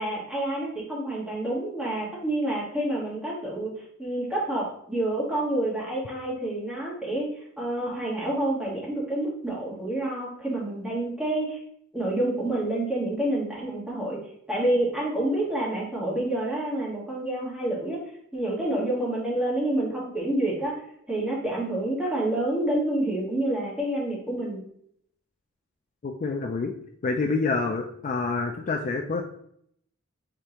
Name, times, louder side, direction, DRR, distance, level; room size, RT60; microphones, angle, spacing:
voice 1, 0.0-3.7 4.0-11.6 11.9-14.2 14.5-18.0 18.3-20.8 21.1-24.6, right 1 dB, 5° right, -5 dB, 1.5 m, -28 dB
voice 2, 26.0-26.7 27.0-29.2, left 4 dB, 35° left, 4 dB, 0.4 m, -27 dB
4.9 x 3.5 x 2.9 m, 0.68 s
head